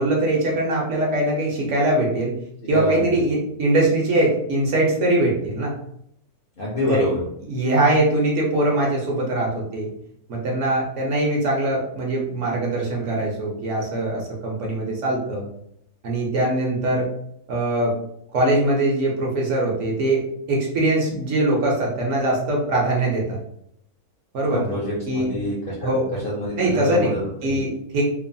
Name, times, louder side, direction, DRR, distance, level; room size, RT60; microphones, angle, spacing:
voice 1, 0.0-2.3 2.7-5.7 6.9-7.1 7.5-9.9 10.3-15.5 16.0-17.1 17.5-17.9 18.3-23.4 24.3-24.7 25.1-25.3 25.8-26.1 26.6-27.1 27.4-28.0, right 1 dB, 65° right, -2 dB, 0.9 m, -22 dB
voice 2, 2.6-3.0 6.6-7.2 24.5-27.6, left 1 dB, 55° left, -5 dB, 0.6 m, -27 dB
3.0 x 2.0 x 2.6 m, 0.74 s
omnidirectional pair, 1.5 m